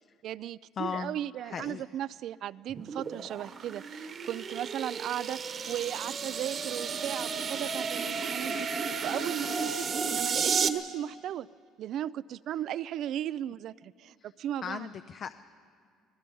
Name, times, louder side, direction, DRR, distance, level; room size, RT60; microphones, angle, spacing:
voice 1, 0.2-11.5 11.8-14.9, right 11 dB, 60° right, 19 dB, 0.4 m, -36 dB
voice 2, 0.7-1.8 14.2-14.3 14.6-15.4, left 7 dB, 45° left, 10 dB, 0.6 m, -37 dB
sound 1, 2.7-10.7, right 5 dB, 40° right, 1.2 m, -33 dB
27.0 x 19.5 x 5.5 m, 2.2 s
cardioid pair, 115°, 0 cm